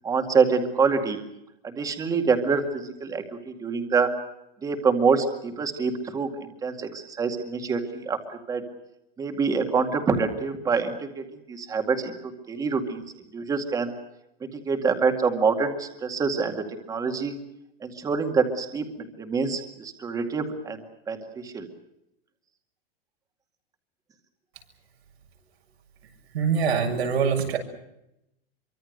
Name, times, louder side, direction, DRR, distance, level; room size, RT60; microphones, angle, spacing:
voice 1, 0.0-1.2 1.6-4.1 4.6-8.2 8.5-8.6 9.2-12.1 12.5-13.0 13.3-13.9 14.6-17.3 17.8-20.8 21.1-21.7, right 5 dB, 10° right, 5 dB, 2.2 m, -26 dB
voice 2, 26.3-27.6, right 6 dB, 90° right, 2 dB, 7.4 m, -24 dB
25.5 x 24.5 x 6.6 m, 0.84 s
supercardioid pair, 170°, 31 cm